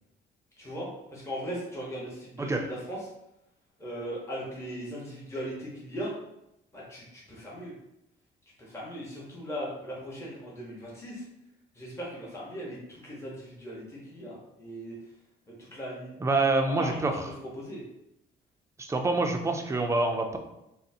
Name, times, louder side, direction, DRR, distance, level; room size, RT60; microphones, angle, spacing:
voice 1, 0.6-3.1 3.8-6.1 6.7-7.7 8.6-11.2 11.7-14.9 15.6-16.1 16.6-17.8, equal, 15° left, -6 dB, 1.0 m, -38 dB
voice 2, 16.2-17.1 18.8-20.4, right 3 dB, 15° right, 4 dB, 0.4 m, -26 dB
3.8 x 2.1 x 2.7 m, 0.86 s
cardioid pair, 90°, 20 cm